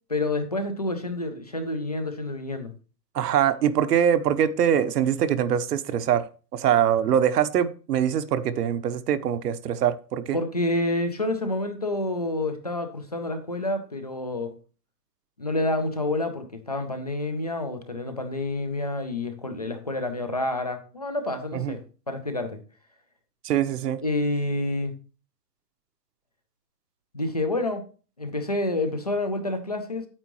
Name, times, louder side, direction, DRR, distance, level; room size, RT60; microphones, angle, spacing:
voice 1, 0.1-2.7 10.3-14.5 15.4-21.8 22.1-22.6 24.0-24.9 27.1-27.8 28.2-30.1, left 2 dB, 25° left, 0.4 m, -28 dB
voice 2, 3.1-6.3 6.5-10.4 21.5-21.8 23.4-24.0, right 9 dB, 70° right, 1.0 m, -23 dB
9.2 x 8.8 x 3.0 m
hypercardioid pair, 175°, 49 cm